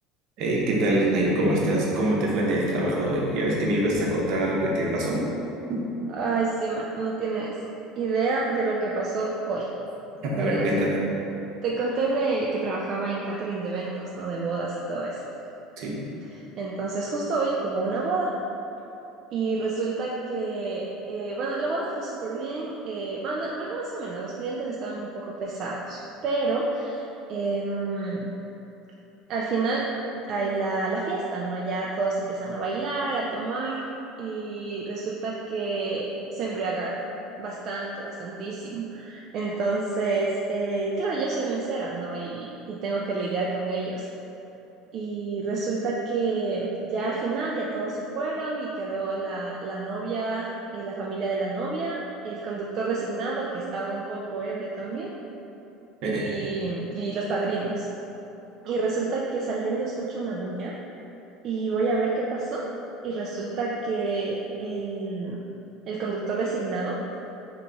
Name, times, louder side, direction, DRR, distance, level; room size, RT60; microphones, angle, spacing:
voice 1, 0.4-5.2 5.7-5.8 10.3-11.0 15.8-15.9 56.0-56.2, right 1 dB, 55° right, -4 dB, 0.8 m, -24 dB
voice 2, 6.1-7.6 8.0-9.7 10.3-10.7 11.6-15.2 16.3-18.3 19.3-27.0 27.3-28.3 29.3-29.9 30.3-33.8 34.2-37.0 37.4-44.1 44.9-55.1 56.0-57.9 58.6-60.8 61.4-62.7 63.0-65.4 65.9-67.0, right 3 dB, 35° right, -4 dB, 0.3 m, -29 dB
3.4 x 2.9 x 3.9 m, 3.0 s
cardioid pair, 165°, 0 cm